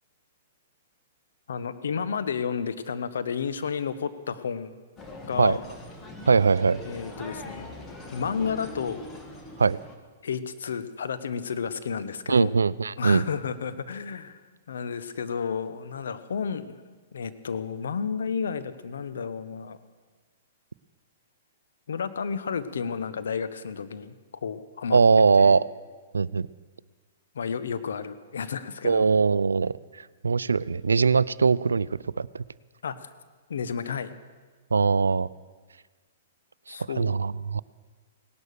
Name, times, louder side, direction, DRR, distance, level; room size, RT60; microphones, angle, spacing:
voice 1, 1.5-4.8 5.2-5.6 6.8-7.7 8.1-9.0 10.2-12.5 13.0-14.4 14.7-16.7 17.1-19.8 21.9-24.1 24.4-25.0 25.4-25.6 27.3-29.1 32.8-33.1 33.5-34.1 36.7-37.1, left 6 dB, 75° left, 12 dB, 1.0 m, -31 dB
sound 1, 5.0-9.9, left 1 dB, 20° left, 2.0 m, -42 dB
voice 2, 6.3-6.8 9.6-9.8 12.3-13.2 24.9-25.6 26.1-26.5 28.8-32.4 34.7-35.3 36.7-37.6, right 5 dB, 90° right, 20 dB, 0.4 m, -21 dB
18.0 x 11.0 x 6.8 m, 1.4 s
hypercardioid pair, 120°, 0 cm